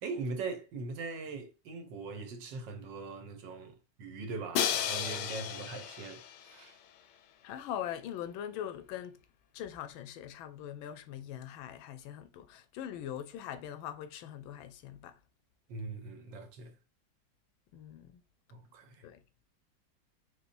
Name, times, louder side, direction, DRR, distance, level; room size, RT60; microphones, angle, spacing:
voice 1, 0.0-6.8 15.7-16.7 18.5-19.0, right 4 dB, 70° right, 1.4 m, -41 dB
Crash cymbal, 4.5-6.6, left 9 dB, 70° left, 1.0 m, -33 dB
voice 2, 7.4-9.2 9.5-15.2 17.7-18.2 19.0-19.2, left 10 dB, 90° left, 1.4 m, -42 dB
4.2 x 3.7 x 2.5 m
omnidirectional pair, 2.1 m